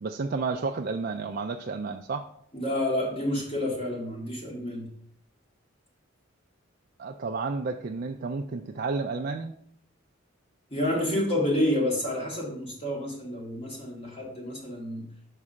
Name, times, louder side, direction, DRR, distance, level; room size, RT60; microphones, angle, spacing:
voice 1, 0.0-2.3 7.0-9.6, right 4 dB, 45° right, 4 dB, 0.4 m, -31 dB
voice 2, 2.5-4.9 10.7-15.1, left 1 dB, 30° left, -2 dB, 2.0 m, -29 dB
5.5 x 4.8 x 6.2 m, 0.67 s
head